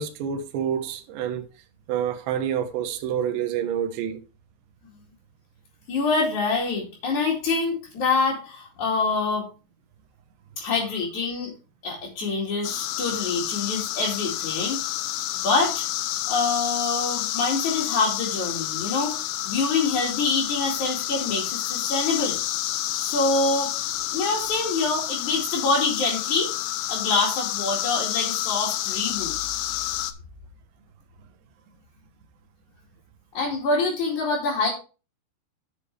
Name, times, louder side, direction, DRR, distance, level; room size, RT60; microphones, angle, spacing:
voice 1, 0.0-1.5 1.9-4.2, right 8 dB, 75° right, 3.3 m, -28 dB
voice 2, 5.9-9.5 10.6-11.5 11.8-15.0 15.4-15.8 16.3-22.4 23.0-23.7 24.1-26.5 26.9-29.4 33.3-34.7, left 3 dB, 45° left, 3.0 m, -25 dB
sound 1, 12.6-30.1, left 14 dB, 85° left, 3.2 m, -29 dB
10.5 x 7.1 x 3.3 m
omnidirectional pair, 5.6 m